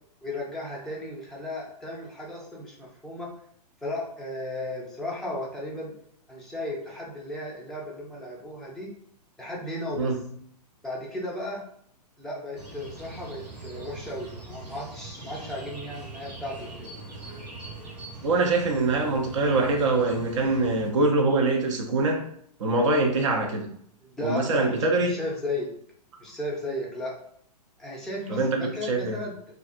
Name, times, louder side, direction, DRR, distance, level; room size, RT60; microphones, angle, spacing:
voice 1, 0.2-3.3 3.8-5.9 6.3-8.9 9.4-10.2 10.8-11.6 12.2-17.0 24.0-25.7 26.2-27.1 27.8-29.3, left 1 dB, ahead, -5 dB, 0.5 m, -35 dB
sound 1, 12.5-20.9, right 2 dB, 85° right, 0.9 m, -42 dB
voice 2, 18.2-22.3 22.6-23.7 24.2-25.2 28.3-29.2, right 2 dB, 50° right, 2 dB, 0.5 m, -24 dB
2.4 x 2.2 x 2.5 m, 0.66 s
figure-of-eight pair, 115°, 21 cm